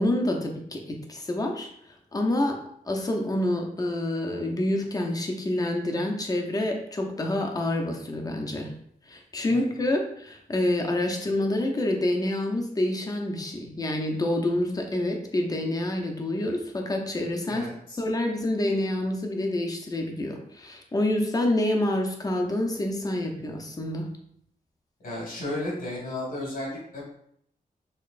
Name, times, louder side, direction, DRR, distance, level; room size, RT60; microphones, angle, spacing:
voice 1, 0.0-1.7 2.1-2.6 2.9-8.7 9.1-17.7 18.0-24.1, left 1 dB, 25° left, 1 dB, 0.6 m, -27 dB
voice 2, 17.5-18.0 25.0-27.0, left 1 dB, 80° left, -4 dB, 1.7 m, -33 dB
6.5 x 3.0 x 2.5 m, 0.70 s
wide cardioid pair, 155°, 15 cm